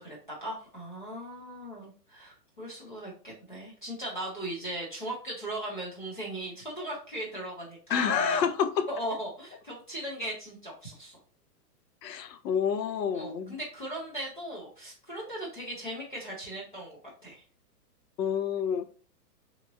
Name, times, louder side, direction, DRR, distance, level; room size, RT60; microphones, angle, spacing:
voice 1, 0.0-8.5 8.9-11.2 13.1-17.4, right 1 dB, 35° left, 0.5 m, -38 dB
voice 2, 7.9-8.8 12.0-13.5 18.2-18.9, left 7 dB, 85° left, 0.6 m, -28 dB
2.9 x 2.4 x 2.6 m
hypercardioid pair, 180°, 49 cm